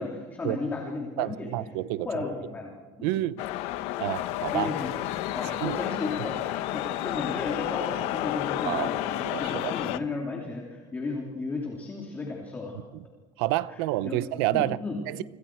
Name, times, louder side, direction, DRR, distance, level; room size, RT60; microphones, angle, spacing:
voice 1, 0.0-2.7 3.0-3.3 4.5-4.9 5.3-12.8 13.7-14.2 14.5-15.0, left 3 dB, 15° left, 2.8 m, -34 dB
voice 2, 1.2-2.1 3.0-3.4 4.0-4.7 5.6-5.8 8.6-8.9 9.2-9.7 12.9-13.0 13.4-14.8 15.1-15.2, right 16 dB, 80° right, 0.9 m, -29 dB
sound 1, 3.4-10.0, left 14 dB, 60° left, 1.0 m, -31 dB
29.5 x 26.0 x 4.6 m
cardioid pair, 180°, 12 cm